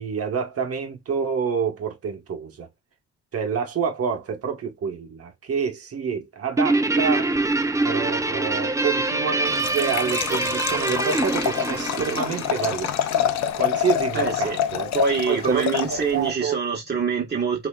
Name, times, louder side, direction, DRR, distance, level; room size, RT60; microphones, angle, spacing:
voice 1, 0.0-2.7 3.3-7.3 7.8-12.9 13.3-14.9 15.3-16.6, right 6 dB, 50° right, 1.4 m, -28 dB
Guitar, 6.6-13.2, right 2 dB, 10° right, 0.5 m, -25 dB
Liquid, 9.5-16.3, left 10 dB, 65° left, 0.6 m, -27 dB
voice 2, 14.1-14.6 14.9-17.7, right 5 dB, 35° right, 1.6 m, -25 dB
6.0 x 2.9 x 2.3 m
cardioid pair, 90°, 30 cm